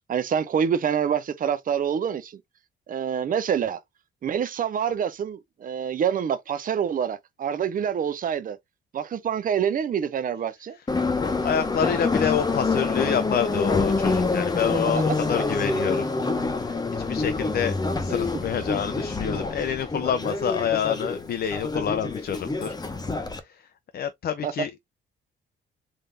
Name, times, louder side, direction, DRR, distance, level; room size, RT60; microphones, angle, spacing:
voice 1, 0.1-2.4 2.9-3.8 4.2-8.6 8.9-10.8 24.4-24.5, right 8 dB, 45° right, 0.6 m, -26 dB
Subway metro underground, 10.9-23.4, left 3 dB, 20° left, 0.9 m, -26 dB
voice 2, 11.2-16.3 16.6-22.8 23.3-24.7, left 8 dB, 50° left, 0.6 m, -28 dB
3.7 x 2.7 x 3.3 m
cardioid pair, 90°, 20 cm